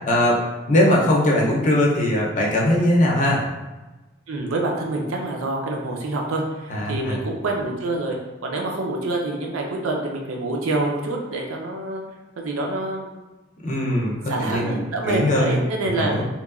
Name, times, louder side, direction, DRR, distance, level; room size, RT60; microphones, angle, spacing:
voice 1, 0.1-0.4 0.7-3.4 6.7-7.2 13.6-14.8 15.0-15.6 16.0-16.2, left 1 dB, 40° left, -3 dB, 0.5 m, -20 dB
voice 2, 4.3-8.2 8.4-12.0 12.4-13.1 14.3-16.1, right 2 dB, 75° right, 0 dB, 0.5 m, -26 dB
2.9 x 2.2 x 2.3 m, 1.1 s
head